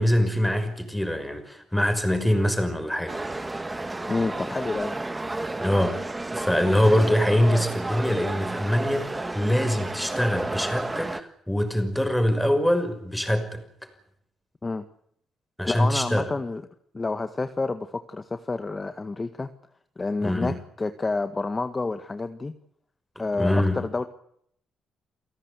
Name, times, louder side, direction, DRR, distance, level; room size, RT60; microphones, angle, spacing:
voice 1, 0.0-3.2 5.5-6.0 6.3-13.6 15.6-16.3 20.2-20.6 23.2-23.8, equal, 5° left, 9 dB, 5.9 m, -24 dB
sound 1, 3.1-11.2, right 2 dB, 15° right, 1.9 m, -31 dB
voice 2, 4.1-5.0 14.6-14.9 15.6-16.6 16.9-19.5 20.0-22.5 23.2-24.1, left 3 dB, 25° left, 8 dB, 1.7 m, -29 dB
29.0 x 18.0 x 8.3 m, 0.70 s
cardioid pair, 90°, 0 cm